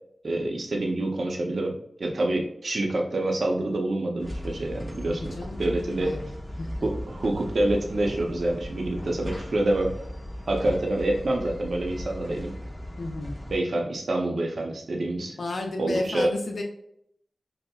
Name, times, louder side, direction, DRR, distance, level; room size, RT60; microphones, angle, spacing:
voice 1, 0.2-1.7 2.0-6.1 6.8-9.9 10.5-12.5 13.5-15.4 15.8-16.3, right 1 dB, 75° right, 1 dB, 0.6 m, -27 dB
sound 1, 4.2-13.6, equal, 15° left, 1.0 m, -37 dB
voice 2, 5.1-5.6 6.0-6.3 6.6-6.9 13.0-13.4 15.4-16.6, left 2 dB, 75° left, 1 dB, 0.5 m, -32 dB
5.5 x 2.0 x 2.2 m, 0.70 s
cardioid pair, 50°, 0 cm